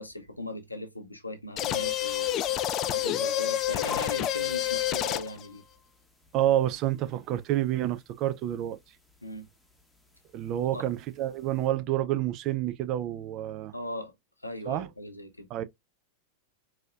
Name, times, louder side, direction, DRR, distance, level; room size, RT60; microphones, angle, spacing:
voice 1, 0.0-2.3 2.8-5.6 9.2-9.5 10.7-10.8 13.7-14.1 14.4-15.5, left 1 dB, 85° left, 0.8 m, -38 dB
sound 1, 1.6-5.5, left 11 dB, 35° left, 0.3 m, -28 dB
sound 2, 3.9-11.7, left 5 dB, 5° left, 0.9 m, -50 dB
voice 2, 6.3-8.8 10.3-13.7 14.7-14.9 15.5-15.6, right 13 dB, 40° right, 0.4 m, -28 dB
4.1 x 2.8 x 2.3 m
figure-of-eight pair, 90°, 0 cm